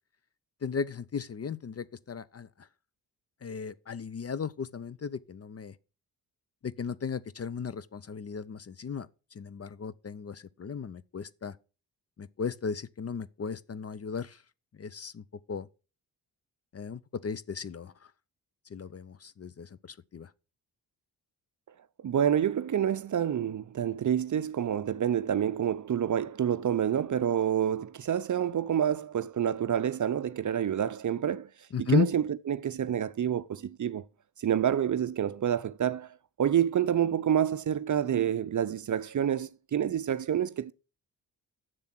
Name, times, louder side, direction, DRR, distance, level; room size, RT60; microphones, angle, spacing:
voice 1, 0.6-2.7 3.4-5.7 6.6-11.6 12.2-14.4 14.8-15.7 16.7-17.9 18.7-20.3 31.7-32.1, left 7 dB, 35° left, 0.6 m, -35 dB
voice 2, 22.0-31.5 31.8-34.0 34.4-36.1 36.4-40.7, right 9 dB, 40° right, 0.6 m, -28 dB
7.0 x 6.9 x 5.9 m
supercardioid pair, 45°, 46 cm